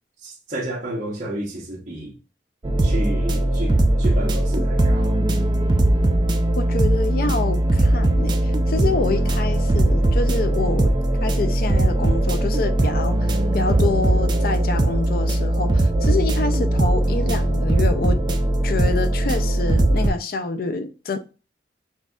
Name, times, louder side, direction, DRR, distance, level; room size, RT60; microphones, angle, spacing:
voice 1, 0.2-2.1 2.8-5.2, right 1 dB, 45° right, 1.0 m, -31 dB
sound 1, 2.6-20.1, right 1 dB, 25° right, 0.4 m, -19 dB
voice 2, 6.6-8.4 8.7-10.9 11.2-18.2 18.6-21.2, left 3 dB, 55° left, 0.4 m, -27 dB
6.0 x 2.6 x 2.4 m
head